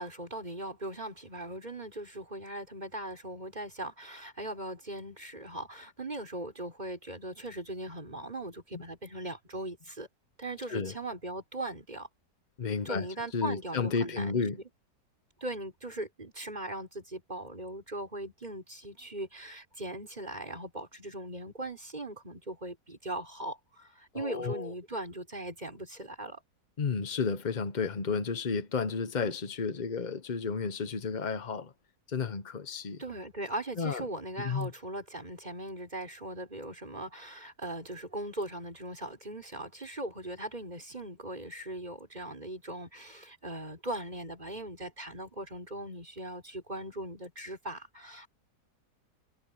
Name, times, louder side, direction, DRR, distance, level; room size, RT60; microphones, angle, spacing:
voice 1, 0.0-10.1 10.4-12.1 12.9-14.4 15.4-26.4 33.0-48.3, right 1 dB, 25° right, 5.2 m, -39 dB
voice 2, 12.6-13.1 13.3-14.6 24.1-24.7 26.8-31.7 32.1-33.0 33.8-34.0 34.4-34.7, left 5 dB, 40° left, 0.6 m, -32 dB
omnidirectional pair, 1.9 m